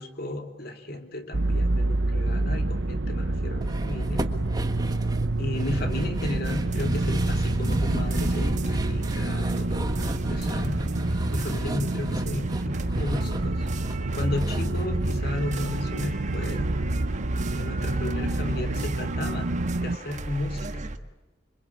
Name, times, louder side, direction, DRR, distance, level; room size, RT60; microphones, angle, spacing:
voice 1, 0.0-4.3 5.4-10.9 11.3-13.6 14.2-16.7 17.5-20.8, left 2 dB, 55° left, 5 dB, 2.9 m, -34 dB
sound 1, 1.3-20.0, right 2 dB, 70° right, 0.9 m, -28 dB
sound 2, 3.6-15.9 16.2-16.3 16.6-16.7, right 1 dB, 20° right, 1.5 m, -34 dB
sound 3, 6.5-21.0, right 1 dB, 40° right, 1.4 m, -35 dB
26.0 x 25.0 x 8.6 m, 1.1 s
head